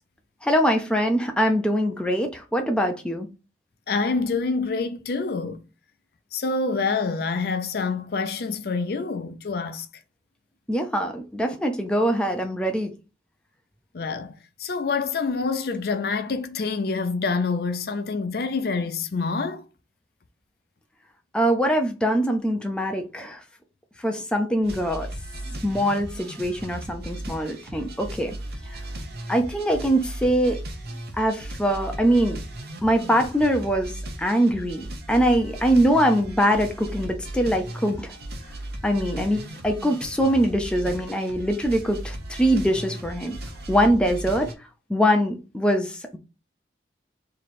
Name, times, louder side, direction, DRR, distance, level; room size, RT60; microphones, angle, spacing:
voice 1, 0.4-3.3 10.7-12.9 21.3-23.4 24.0-25.1 25.5-28.3 28.7-28.8 29.3-30.6 31.2-32.4 32.8-38.1 38.8-43.4 43.7-44.5 44.9-46.2, equal, 5° left, 0.5 m, -23 dB
voice 2, 3.9-5.6 6.3-9.9 13.9-14.3 14.6-19.6, left 4 dB, 60° left, 0.5 m, -26 dB
sound 1, 24.6-44.5, right 1 dB, 60° right, 0.9 m, -36 dB
3.1 x 2.8 x 4.1 m
head